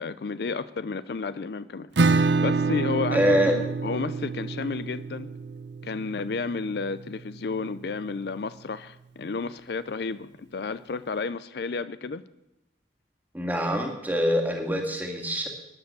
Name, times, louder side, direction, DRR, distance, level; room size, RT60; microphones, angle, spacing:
voice 1, 0.0-1.9 2.4-5.3 5.8-12.2, left 4 dB, 65° left, 15 dB, 0.4 m, -32 dB
Acoustic guitar / Strum, 2.0-7.4, right 4 dB, 80° right, 0.7 m, -27 dB
voice 2, 3.1-3.6 13.3-15.5, equal, 10° right, 2 dB, 2.0 m, -24 dB
15.0 x 10.5 x 6.8 m, 0.88 s
head